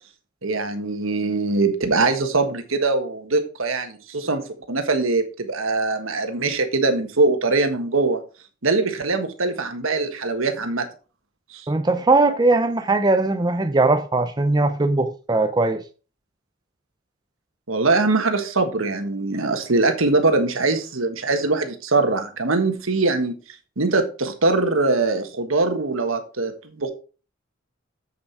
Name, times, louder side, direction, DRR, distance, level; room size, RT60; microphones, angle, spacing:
voice 1, 0.4-4.4 4.7-8.2 8.6-10.9 11.5-11.6 17.7-23.3 23.8-26.9, right 3 dB, 75° right, 1.5 m, -22 dB
voice 2, 11.7-15.8, right 2 dB, 20° right, 0.5 m, -20 dB
7.7 x 7.0 x 4.6 m
head